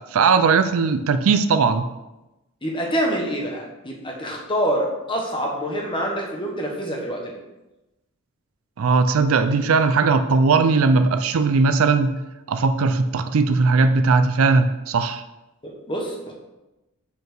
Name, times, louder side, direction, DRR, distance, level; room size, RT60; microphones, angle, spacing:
voice 1, 0.1-1.9 8.8-12.1 12.5-15.2, right 4 dB, 70° right, 11 dB, 0.4 m, -18 dB
voice 2, 2.6-7.4 15.6-16.3, equal, 25° left, 0 dB, 1.3 m, -26 dB
5.3 x 4.6 x 6.1 m, 1.0 s
head